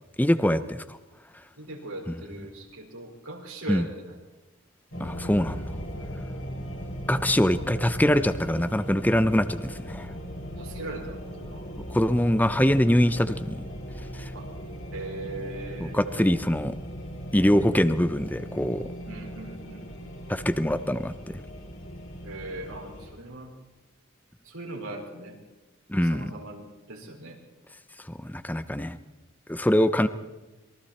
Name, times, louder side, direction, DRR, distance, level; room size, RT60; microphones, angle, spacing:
voice 1, 0.2-1.0 3.7-3.8 5.0-5.6 7.1-10.1 11.9-13.6 14.1-14.3 15.8-16.7 17.3-18.9 20.3-21.4 25.9-26.3 28.1-29.0 29.5-30.1, equal, 10° left, 12 dB, 0.7 m, -24 dB
voice 2, 1.6-4.1 10.6-11.7 14.3-14.5 14.9-16.4 19.0-20.2 22.2-23.5 24.4-25.4 25.9-27.4, right 2 dB, 85° right, 0 dB, 5.0 m, -40 dB
sound 1, 4.9-23.1, equal, 70° left, 5.3 m, -38 dB
27.5 x 23.0 x 4.4 m, 1.1 s
head